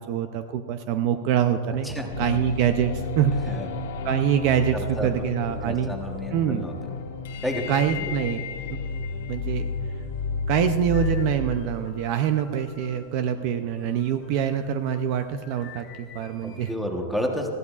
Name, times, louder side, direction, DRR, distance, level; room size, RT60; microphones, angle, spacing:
voice 1, 0.1-3.6 4.0-5.9 6.3-6.6 7.7-8.4 9.3-9.7 10.5-16.7, right 9 dB, 40° right, 9 dB, 0.4 m, -25 dB
voice 2, 1.8-2.2 3.4-3.7 4.7-5.2 5.6-6.7 7.4-7.6 8.0-8.1 16.4-17.5, equal, ahead, 2 dB, 1.1 m, -31 dB
sound 1, 2.1-11.4, left 4 dB, 75° left, 1.3 m, -31 dB
sound 2, 10.9-16.7, left 6 dB, 25° left, 1.6 m, -50 dB
20.0 x 14.5 x 2.4 m, 2.2 s
supercardioid pair, 170°, 0 cm